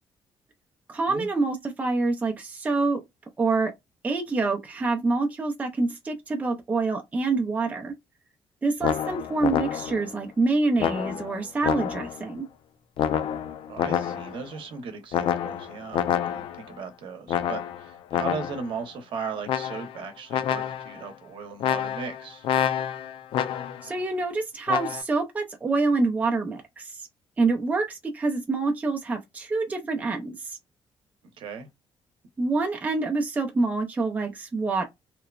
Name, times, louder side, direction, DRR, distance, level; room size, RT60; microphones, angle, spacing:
voice 1, 0.9-3.0 3.4-3.7 4.0-7.9 8.6-12.5 23.8-27.1 27.4-30.6 32.4-34.9, right 3 dB, 15° right, 0.5 m, -26 dB
sound 1, 8.8-10.1 10.8-12.3 13.0-14.5 15.1-16.7 17.3-18.7 19.5-20.0 20.3-21.0 21.6-23.9 24.7-25.0, left 9 dB, 70° left, 0.4 m, -28 dB
voice 2, 13.7-22.5 31.4-31.7, right 5 dB, 65° right, 0.8 m, -37 dB
2.9 x 2.1 x 2.3 m
cardioid pair, 160°, 9 cm